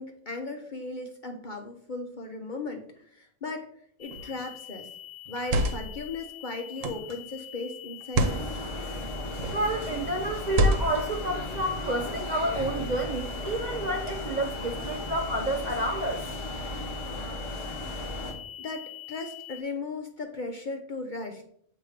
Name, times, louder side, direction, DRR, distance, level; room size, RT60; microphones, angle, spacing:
voice 1, 0.0-3.7 4.0-4.9 5.3-8.6 18.6-21.4, left 3 dB, 45° left, 3 dB, 0.7 m, -37 dB
sound 1, 4.0-19.6, left 13 dB, 85° left, 1.1 m, -44 dB
sound 2, 4.1-4.4 5.3-6.0 6.8-7.2 8.0-8.4 9.3-9.7 10.5-11.1, right 1 dB, 70° right, 1.1 m, -27 dB
sound 3, 8.2-18.3, left 1 dB, 25° left, 1.2 m, -36 dB
voice 2, 9.5-16.3, right 1 dB, 50° right, 1 dB, 0.5 m, -30 dB
7.8 x 2.9 x 4.9 m, 0.62 s
omnidirectional pair, 1.4 m